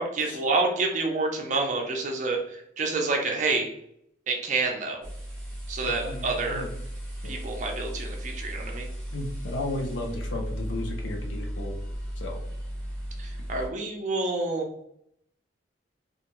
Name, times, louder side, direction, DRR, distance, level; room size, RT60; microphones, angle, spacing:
voice 1, 0.0-3.7 4.3-5.0 5.7-6.6 7.2-8.9 13.2-14.7, right 3 dB, 40° right, 1 dB, 0.5 m, -28 dB
sound 1, 5.0-13.7, equal, 5° left, 0.7 m, -35 dB
voice 2, 5.8-6.7 7.2-7.4 9.1-11.8 12.2-12.4, left 2 dB, 70° left, 2 dB, 0.5 m, -34 dB
2.4 x 2.2 x 2.9 m, 0.73 s
head